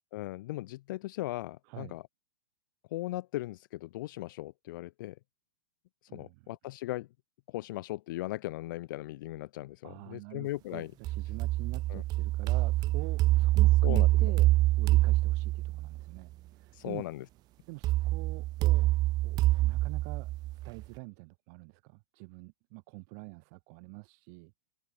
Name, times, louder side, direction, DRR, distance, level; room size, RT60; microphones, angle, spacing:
voice 1, 0.1-2.1 2.9-5.2 6.1-7.1 7.5-10.9 11.9-12.0 13.8-14.3 16.7-17.2, left 17 dB, 60° left, 2.7 m, -38 dB
voice 2, 6.1-6.4 9.8-14.5 14.8-17.0 17.7-18.9 19.2-20.3 20.6-24.5, right 34 dB, 50° right, 7.8 m, -45 dB
sound 1, 11.1-16.0 17.8-20.8, right 17 dB, 35° right, 0.8 m, -26 dB
open air
hypercardioid pair, 115°, 12 cm